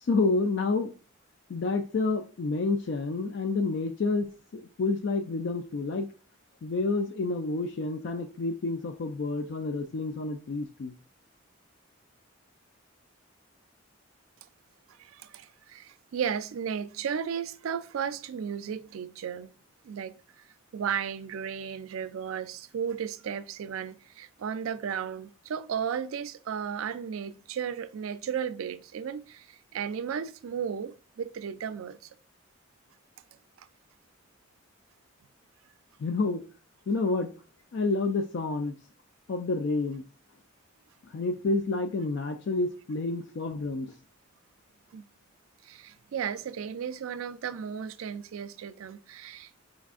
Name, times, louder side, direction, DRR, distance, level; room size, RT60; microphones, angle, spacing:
voice 1, 0.0-0.9 1.5-6.1 6.6-10.9 36.0-36.4 36.9-37.3 37.7-38.7 39.3-40.0 41.1-43.9, left 3 dB, 55° left, 0.3 m, -29 dB
voice 2, 15.0-19.5 19.8-20.4 20.7-32.1 33.6-33.7 44.9-45.0 45.6-49.5, right 7 dB, 80° right, 0.3 m, -34 dB
5.1 x 2.4 x 3.5 m
head